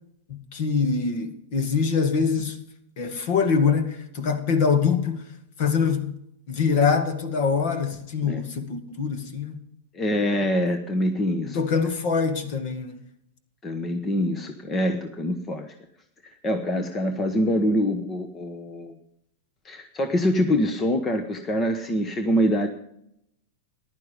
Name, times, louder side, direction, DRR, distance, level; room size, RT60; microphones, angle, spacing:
voice 1, 0.3-2.6 3.0-5.3 5.6-6.1 6.5-9.6 11.4-13.0, left 5 dB, 40° left, 2.1 m, -24 dB
voice 2, 9.9-11.6 13.6-15.7 16.4-18.9 19.6-22.7, equal, 15° left, 1.1 m, -25 dB
15.0 x 11.0 x 5.1 m
supercardioid pair, 165°, 0 cm